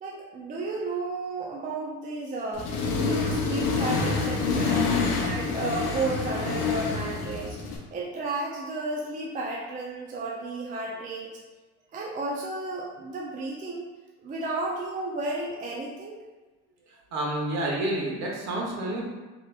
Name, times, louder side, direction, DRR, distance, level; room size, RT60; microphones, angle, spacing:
voice 1, 0.0-2.7 3.0-4.9 5.2-7.6 7.9-11.3 11.9-13.8 14.2-16.2, right 2 dB, 25° right, -3 dB, 0.4 m, -33 dB
Accelerating revving vroom, 2.5-7.8, left 4 dB, 45° left, 0.7 m, -27 dB
voice 2, 17.1-19.0, right 1 dB, 50° right, -2 dB, 1.0 m, -29 dB
3.2 x 2.9 x 2.4 m, 1.2 s
supercardioid pair, 95°, 36 cm